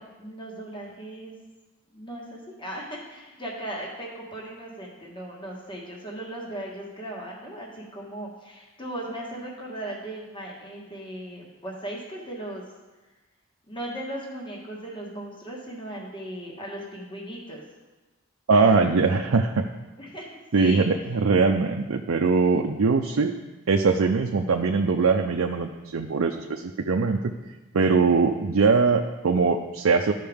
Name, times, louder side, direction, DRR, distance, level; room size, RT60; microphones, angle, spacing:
voice 1, 0.0-1.3 1.9-12.6 13.7-17.6 18.5-19.4 20.0-20.3 20.5-20.9, right 1 dB, 25° left, -2 dB, 1.6 m, -37 dB
voice 2, 18.5-19.7 20.5-23.3 23.7-27.2 27.7-30.1, right 4 dB, 85° right, 3 dB, 0.5 m, -21 dB
13.0 x 5.6 x 3.5 m, 1.2 s
head